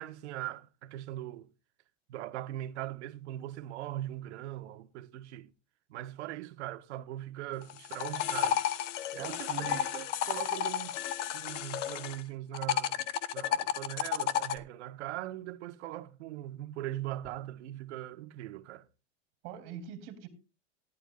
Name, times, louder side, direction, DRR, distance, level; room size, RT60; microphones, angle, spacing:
voice 1, 0.0-1.5 2.1-5.5 5.9-8.6 9.1-18.9, right 14 dB, 65° right, 1.4 m, -40 dB
sound 1, 7.6-12.2 12.5-14.6, left 10 dB, 70° left, 1.2 m, -32 dB
voice 2, 9.2-9.8 19.4-20.3, right 9 dB, 40° right, 3.7 m, -42 dB
18.0 x 11.5 x 2.5 m
supercardioid pair, 170°, 37 cm